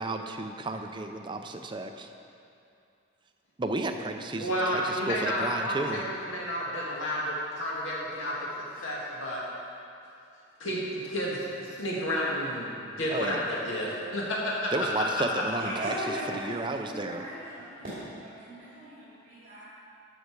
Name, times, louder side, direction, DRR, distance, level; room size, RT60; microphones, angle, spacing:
voice 1, 0.0-2.1 3.6-6.1 13.1-13.4 14.7-17.2, right 2 dB, 25° right, 5 dB, 0.5 m, -33 dB
voice 2, 4.4-9.4 10.6-14.7 15.0-15.1, equal, 75° left, -5 dB, 1.9 m, -31 dB
voice 3, 15.6-19.7, right 1 dB, 40° right, -11 dB, 2.8 m, -38 dB
13.0 x 6.9 x 4.7 m, 2.6 s
head